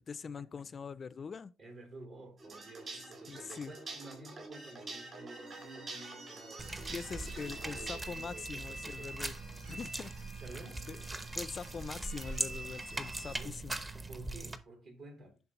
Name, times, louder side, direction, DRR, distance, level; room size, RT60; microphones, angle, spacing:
voice 1, 0.0-1.5 3.3-3.7 6.9-9.4 9.7-10.1 10.9-11.0 11.4-13.8, left 5 dB, 40° left, 0.3 m, -43 dB
voice 2, 1.6-6.8 7.3-9.2 10.4-10.9 13.4-13.5 14.1-15.4, right 2 dB, 70° right, 4.0 m, -51 dB
Wah Wah Wah Wah, 2.4-8.0, right 3 dB, 50° right, 4.0 m, -47 dB
sound 1, 5.1-13.4, right 2 dB, 90° right, 2.6 m, -49 dB
sound 2, 6.6-14.6, right 2 dB, 20° right, 0.7 m, -41 dB
10.5 x 3.7 x 2.9 m
cardioid pair, 90°, 0 cm